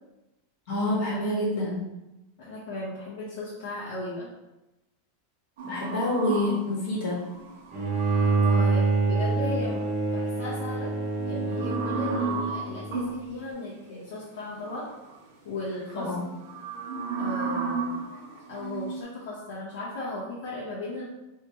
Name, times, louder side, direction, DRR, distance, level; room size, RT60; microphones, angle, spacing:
voice 1, 0.7-1.8 5.6-7.2 15.9-16.2, left 1 dB, 45° left, -4 dB, 1.2 m, -27 dB
voice 2, 2.4-4.3 8.4-9.8 10.1-10.9 11.2-14.8 15.4-16.1 17.2-18.0 18.5-21.1, left 2 dB, 60° left, -7 dB, 0.8 m, -36 dB
sound 1, 5.6-8.8 11.0-13.2 14.6-15.2 15.6-19.0, right 4 dB, 60° right, 0.6 m, -34 dB
Bowed string instrument, 7.7-12.9, right 3 dB, 20° right, 0.7 m, -26 dB
3.0 x 2.8 x 3.4 m, 0.99 s
supercardioid pair, 180°, 0 cm